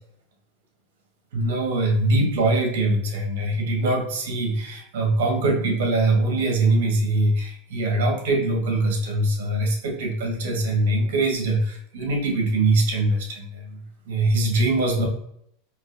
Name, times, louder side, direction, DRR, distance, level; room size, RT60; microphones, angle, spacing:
voice 1, 1.3-15.1, right 2 dB, 75° right, 2 dB, 1.3 m, -23 dB
4.0 x 3.0 x 2.5 m, 0.71 s
supercardioid pair, 120°, 0 cm